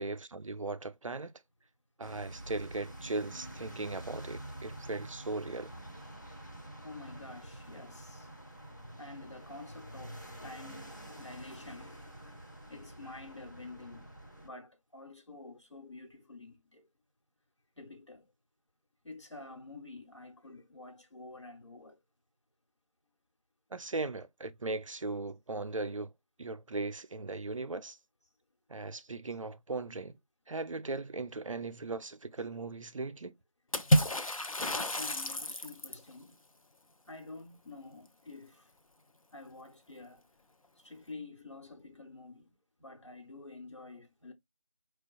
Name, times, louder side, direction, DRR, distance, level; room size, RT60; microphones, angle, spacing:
voice 1, 0.0-1.3 2.0-5.7 23.7-26.1 26.4-28.0 28.7-30.2 30.5-33.3, right 3 dB, 70° right, 0.4 m, -38 dB
sound 1, 2.0-14.5, right 1 dB, 35° left, 0.6 m, -48 dB
voice 2, 6.8-16.9 17.8-18.3 19.0-22.0 34.6-36.4 37.1-38.7 39.3-40.2 40.8-44.3, left 2 dB, 60° left, 1.1 m, -49 dB
Water / Splash splatter, 33.7-36.1, equal, 90° left, 0.6 m, -29 dB
4.3 x 2.2 x 2.4 m
figure-of-eight pair, 175°, 17 cm